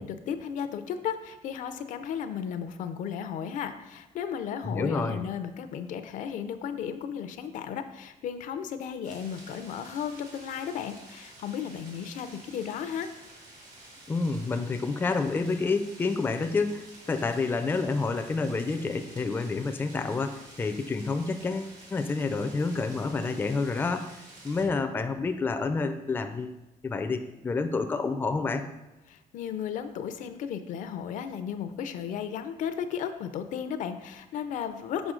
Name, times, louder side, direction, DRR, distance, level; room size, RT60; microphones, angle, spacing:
voice 1, 0.0-13.1 29.1-35.1, left 8 dB, 75° left, 10 dB, 0.5 m, -34 dB
voice 2, 4.6-5.2 14.1-24.1 24.4-26.6 26.8-28.6, left 4 dB, 15° left, 7 dB, 0.4 m, -29 dB
sound 1, 9.0-24.7, right 2 dB, 80° right, 1.9 m, -50 dB
6.2 x 4.8 x 3.7 m, 1.1 s
cardioid pair, 140°, 13 cm